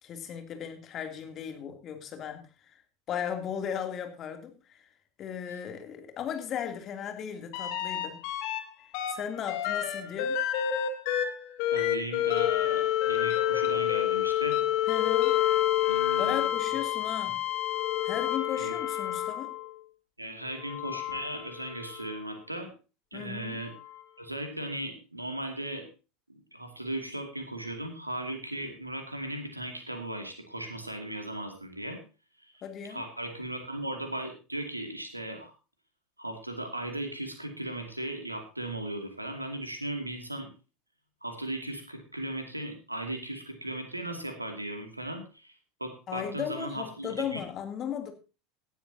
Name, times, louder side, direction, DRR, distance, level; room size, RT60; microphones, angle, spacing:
voice 1, 0.0-2.8 3.1-4.9 5.2-8.2 9.1-10.4 14.9-15.4 16.2-17.5 18.0-19.5 23.1-23.6 32.6-33.0 46.1-48.1, left 8 dB, 35° left, 5 dB, 2.9 m, -36 dB
sound 1, 7.5-8.6 8.9-19.7 20.6-22.1 23.8-23.9, left 11 dB, 55° left, 2.1 m, -28 dB
voice 2, 11.7-14.6 15.9-16.5 17.3-17.4 18.6-18.7 20.2-22.7 23.1-23.7 24.2-25.9 26.3-32.0 32.4-32.5 32.9-35.5 36.2-40.5 41.2-47.4, right 1 dB, 90° right, 5 dB, 2.4 m, -37 dB
17.5 x 12.0 x 2.8 m, 0.32 s
figure-of-eight pair, 75°, 0 cm